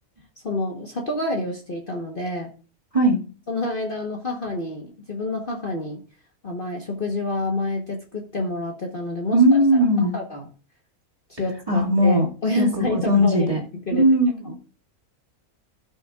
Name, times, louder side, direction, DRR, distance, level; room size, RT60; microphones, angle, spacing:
voice 1, 0.4-2.5 3.5-6.0 6.4-9.6 10.1-10.4 11.3-14.0 14.5-14.6, left 2 dB, 40° left, 1 dB, 1.3 m, -28 dB
voice 2, 9.3-10.1 11.7-12.3 12.6-13.6 13.9-14.5, equal, 25° right, -3 dB, 2.1 m, -18 dB
16.5 x 6.2 x 2.4 m, 0.39 s
omnidirectional pair, 1.6 m